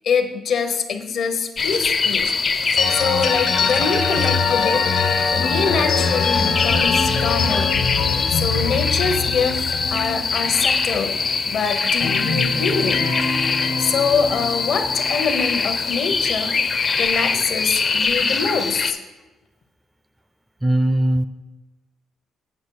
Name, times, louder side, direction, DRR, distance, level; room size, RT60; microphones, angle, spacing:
voice 1, 0.0-2.4 2.9-4.9 5.3-7.8 8.3-9.6 9.9-13.1 13.8-16.6 17.0-19.0, left 5 dB, 65° left, 7 dB, 0.9 m, -24 dB
sound 1, 1.6-18.9, left 4 dB, 40° left, 0.5 m, -23 dB
sound 2, 1.6-1.9 2.1-2.4 2.6-2.8 3.1-3.3 3.6-3.8 4.1-4.3 4.6-4.8 5.1-5.9 6.1-6.4, right 6 dB, 85° right, 0.7 m, -42 dB
sound 3, 2.8-11.5 11.8-15.9, left 5 dB, 85° left, 1.4 m, -24 dB
voice 2, 20.6-21.3, right 1 dB, 10° right, 11 dB, 0.4 m, -18 dB
8.2 x 5.0 x 4.7 m, 1.1 s
cardioid pair, 90°, 0 cm